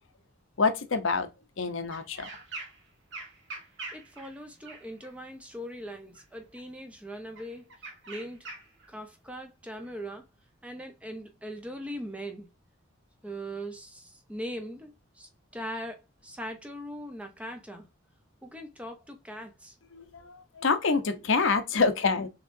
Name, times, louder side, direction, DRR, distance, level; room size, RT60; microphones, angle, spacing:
voice 1, 0.6-1.3 1.6-2.3 19.9-22.3, left 4 dB, 70° left, 0.8 m, -26 dB
sound 1, 1.9-2.8 3.1-5.1 6.1-6.6 7.3-8.9 9.8-9.9, right 3 dB, 60° right, 1.5 m, -43 dB
voice 2, 3.9-8.5 8.9-10.2 10.6-12.5 13.2-17.9 18.4-19.8, equal, 5° right, 0.7 m, -40 dB
6.4 x 3.1 x 2.6 m
head